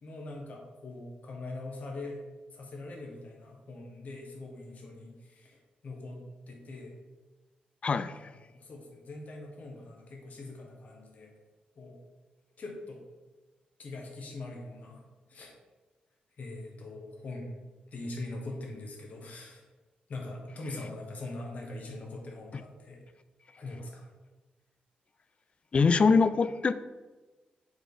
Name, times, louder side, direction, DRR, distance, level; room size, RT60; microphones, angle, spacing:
voice 1, 0.0-2.2 2.5-5.6 5.8-6.2 6.5-7.0 8.1-11.3 11.7-12.0 12.6-13.0 13.8-15.0 15.3-15.5 16.4-17.6 17.9-19.6 20.1-23.0 23.6-24.1, left 2 dB, 60° left, 0 dB, 1.5 m, -42 dB
voice 2, 7.8-8.3 22.5-22.6 25.7-26.7, left 4 dB, 40° left, 13 dB, 0.3 m, -24 dB
6.7 x 4.4 x 3.9 m, 1.2 s
cardioid pair, 95°, 3 cm